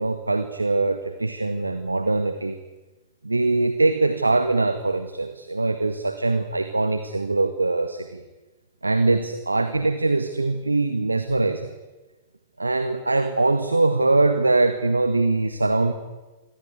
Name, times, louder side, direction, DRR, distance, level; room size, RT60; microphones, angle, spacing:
voice 1, 0.0-2.6 3.2-8.2 8.8-11.7 12.6-15.9, right 3 dB, 85° right, 10 dB, 1.7 m, -22 dB
26.5 x 22.5 x 9.7 m, 1.2 s
figure-of-eight pair, 100°, 0 cm